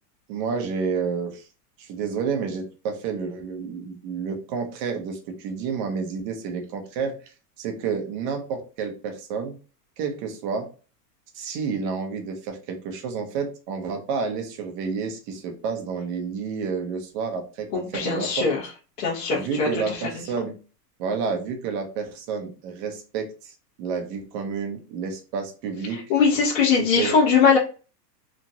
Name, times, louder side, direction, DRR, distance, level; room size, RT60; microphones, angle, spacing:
voice 1, 0.3-1.5 1.8-7.1 7.6-9.5 10.0-10.7 11.3-18.5 19.3-20.5 21.0-26.0 26.8-27.2, right 5 dB, 30° right, 4 dB, 0.6 m, -30 dB
voice 2, 17.7-18.6 19.0-20.0 25.9-27.6, left 5 dB, 60° left, -5 dB, 1.1 m, -21 dB
3.0 x 2.4 x 2.6 m, 0.35 s
supercardioid pair, 150°, 49 cm